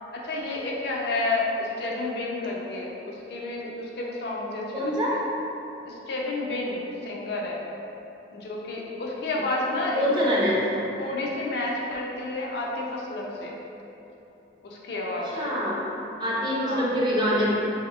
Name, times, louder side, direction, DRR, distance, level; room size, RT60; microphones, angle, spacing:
voice 1, 0.1-5.2 5.9-7.6 8.3-10.3 11.0-13.5 14.6-15.4 16.6-16.9, left 2 dB, 60° left, -3 dB, 0.4 m, -30 dB
voice 2, 4.7-5.2 9.9-10.9 15.3-15.9 16.2-17.5, equal, 25° right, -6 dB, 0.5 m, -25 dB
3.2 x 2.8 x 2.3 m, 2.9 s
head